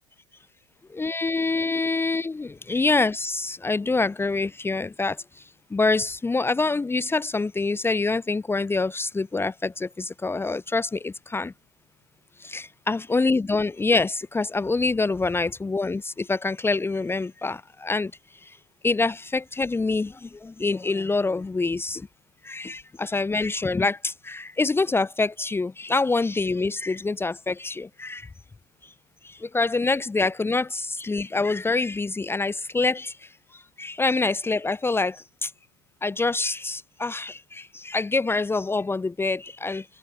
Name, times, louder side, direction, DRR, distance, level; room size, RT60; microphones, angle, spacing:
voice 1, 0.9-5.2 5.7-11.5 12.4-18.1 18.8-22.0 22.4-28.3 29.2-33.1 33.8-35.5 36.0-39.8, left 3 dB, 15° left, 1.0 m, -26 dB
hypercardioid pair, 75°, 16 cm